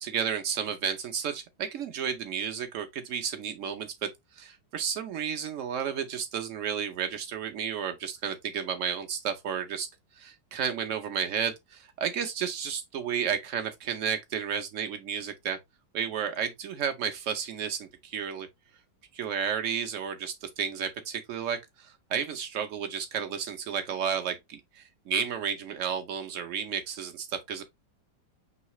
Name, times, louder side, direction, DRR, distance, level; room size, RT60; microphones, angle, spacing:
voice 1, 0.0-9.9 10.2-15.6 15.9-18.5 19.1-27.6, right 7 dB, 80° right, 0.6 m, -32 dB
5.5 x 3.1 x 2.9 m
omnidirectional pair, 2.0 m